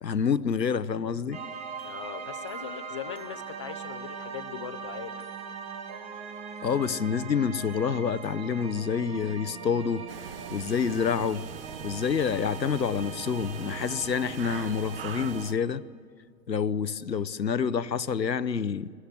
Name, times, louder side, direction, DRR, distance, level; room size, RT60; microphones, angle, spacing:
voice 1, 0.0-1.4 6.6-10.1 10.5-11.5 11.8-15.8 16.5-18.9, left 6 dB, 85° left, 0.8 m, -28 dB
sound 1, 1.3-15.7, right 5 dB, 15° right, 0.8 m, -41 dB
voice 2, 1.8-5.2, left 9 dB, 20° left, 0.5 m, -40 dB
sound 2, 10.1-15.5, right 9 dB, 35° right, 0.6 m, -42 dB
25.5 x 20.5 x 6.6 m
figure-of-eight pair, 115°, 49 cm